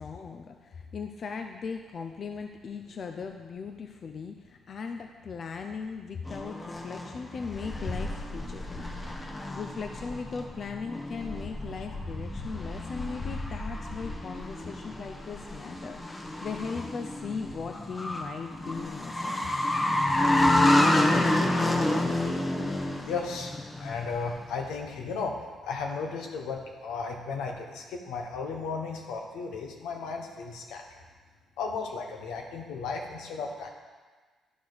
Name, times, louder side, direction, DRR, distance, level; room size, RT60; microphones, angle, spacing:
voice 1, 0.0-8.6 9.5-19.4, left 5 dB, 50° left, 5 dB, 0.5 m, -38 dB
sound 1, 6.3-24.3, left 1 dB, 25° left, 0.9 m, -29 dB
voice 2, 23.0-23.5 23.8-25.4 25.6-30.8 31.6-33.7, left 4 dB, 90° left, 2 dB, 1.0 m, -34 dB
11.0 x 4.8 x 4.0 m, 1.4 s
cardioid pair, 90°, 0 cm